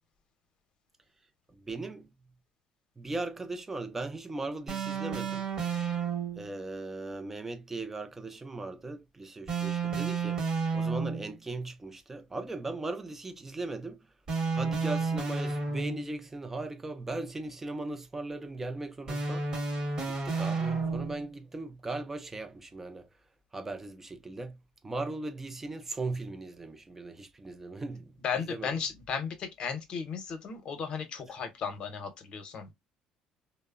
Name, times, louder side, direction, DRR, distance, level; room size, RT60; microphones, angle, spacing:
voice 1, 1.5-2.1 3.0-5.5 6.4-10.4 10.7-14.0 14.5-19.5 20.1-23.1 23.5-24.6 24.8-28.1 28.5-28.8, right 2 dB, 15° right, 0.4 m, -38 dB
sound 1, 4.7-6.5 9.5-11.4 14.3-16.2 19.1-21.3, right 4 dB, 35° right, 0.9 m, -31 dB
voice 2, 28.2-32.7, left 6 dB, 50° left, 0.7 m, -35 dB
2.9 x 2.0 x 2.3 m
cardioid pair, 125°, 2 cm